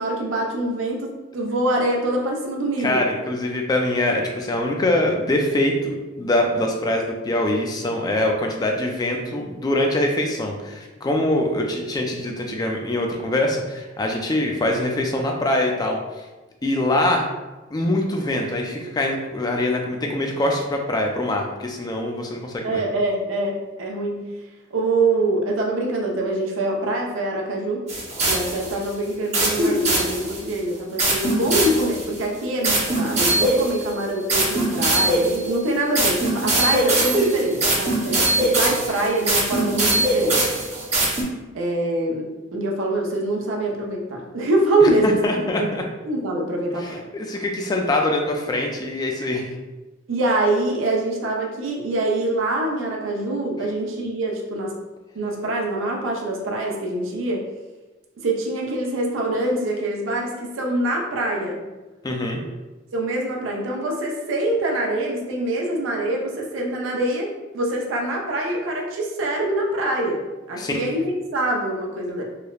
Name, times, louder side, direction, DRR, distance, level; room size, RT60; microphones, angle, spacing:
voice 1, 0.0-3.0 22.6-24.2 24.7-27.8 28.2-40.4 41.5-45.2 45.6-45.7 46.0-47.0 50.1-54.7 55.1-57.4 58.2-61.7 62.9-70.2 70.5-72.2, right 2 dB, 85° right, 0 dB, 0.5 m, -24 dB
voice 2, 2.8-16.0 16.6-17.2 17.7-22.8 44.8-45.8 46.8-49.5 62.0-62.4 70.6-70.8, left 1 dB, 20° left, 1 dB, 0.3 m, -23 dB
sound 1, 27.9-28.8 29.3-30.5 31.0-32.2 32.6-41.2, right 2 dB, 35° right, 0.6 m, -21 dB
3.1 x 2.0 x 2.3 m, 1.1 s
head